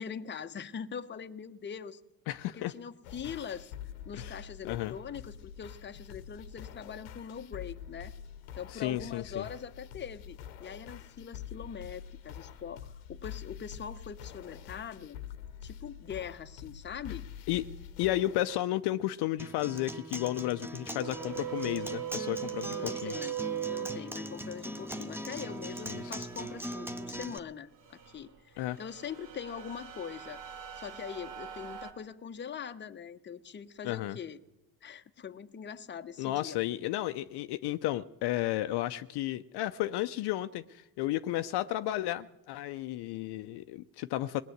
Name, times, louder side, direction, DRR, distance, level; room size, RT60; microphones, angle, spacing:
voice 1, 0.0-2.0 2.5-3.7 4.0-8.1 8.5-15.2 15.6-17.2 22.7-23.4 23.7-30.4 30.8-34.4 34.8-36.6 36.8-36.9, left 7 dB, 25° left, 0.8 m, -42 dB
voice 2, 2.3-2.7 4.1-4.4 4.6-4.9 8.7-9.4 17.5-17.6 18.0-23.1 25.9-26.0 28.6-28.8 33.8-34.2 36.2-44.4, left 15 dB, 60° left, 0.6 m, -33 dB
sound 1, 3.0-18.6, left 9 dB, 85° left, 1.0 m, -46 dB
Acoustic guitar, 19.4-27.4, equal, 5° right, 0.8 m, -40 dB
sound 2, 21.0-27.2 27.6-31.9, right 11 dB, 70° right, 1.9 m, -41 dB
19.0 x 8.9 x 7.9 m
hypercardioid pair, 75°, 45 cm